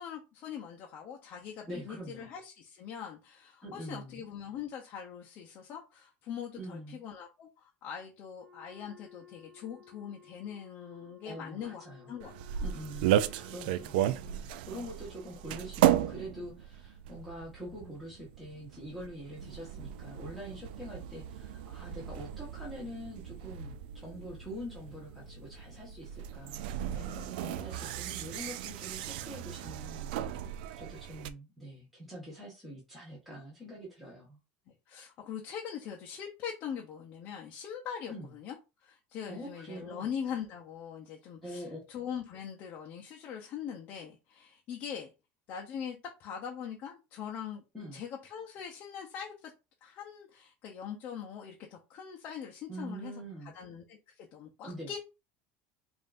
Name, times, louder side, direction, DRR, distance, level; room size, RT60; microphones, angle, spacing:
voice 1, 0.0-12.3 26.9-27.1 30.4-30.5 34.7-38.5 38.8-45.1 45.5-47.6 47.9-49.5 49.8-53.1 53.5-55.0, left 8 dB, 35° left, 0.7 m, -42 dB
voice 2, 1.7-2.3 3.6-4.2 6.6-7.0 11.2-12.1 12.6-14.0 14.3-34.4 38.1-38.3 39.3-40.1 41.4-41.9 47.7-48.0 52.7-53.5 54.6-54.9, equal, ahead, 1.2 m, -45 dB
Wind instrument woodwind instrument, 8.3-14.4, left 6 dB, 20° right, 1.2 m, -57 dB
sound 1, 12.2-31.3, right 12 dB, 85° right, 0.3 m, -35 dB
5.4 x 2.6 x 2.5 m
cardioid pair, 170°, 5 cm